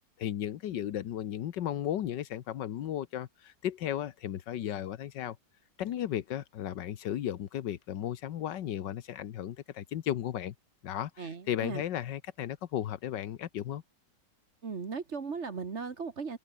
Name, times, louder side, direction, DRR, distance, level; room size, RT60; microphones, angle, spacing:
voice 1, 0.2-5.4 5.8-10.5 10.8-13.8, left 11 dB, 85° left, 1.6 m, -35 dB
voice 2, 11.2-11.8 14.6-16.4, right 5 dB, 40° right, 1.8 m, -37 dB
open air
omnidirectional pair, 1.9 m